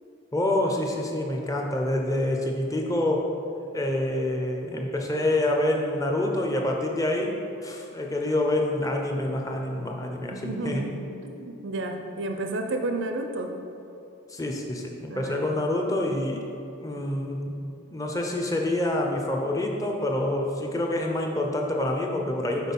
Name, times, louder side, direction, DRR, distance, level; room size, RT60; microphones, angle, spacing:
voice 1, 0.3-3.3 3.7-7.3 7.6-10.9 14.3-16.4 16.8-17.6 17.9-22.7, left 1 dB, 15° left, 1 dB, 0.6 m, -27 dB
voice 2, 10.3-13.5 15.1-15.5, right 2 dB, 65° right, 4 dB, 0.5 m, -32 dB
6.0 x 4.6 x 5.5 m, 2.7 s
head